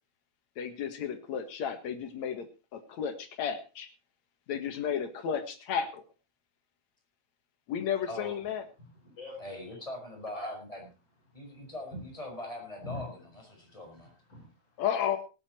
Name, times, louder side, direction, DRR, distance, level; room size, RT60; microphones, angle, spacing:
voice 1, 0.6-2.5 2.7-3.9 4.5-6.0 7.7-8.6 14.8-15.2, left 8 dB, 70° left, 8 dB, 3.0 m, -33 dB
voice 2, 8.1-8.4 9.4-10.9 11.3-14.1, left 1 dB, 10° left, 1 dB, 5.6 m, -41 dB
voice 3, 8.8-9.6 10.3-10.5 11.3-11.4 11.9-12.0 12.8-13.1 13.6-13.8 14.3-14.8, left 1 dB, 40° left, -3 dB, 6.2 m, -43 dB
18.0 x 10.0 x 4.4 m, 0.32 s
omnidirectional pair, 3.4 m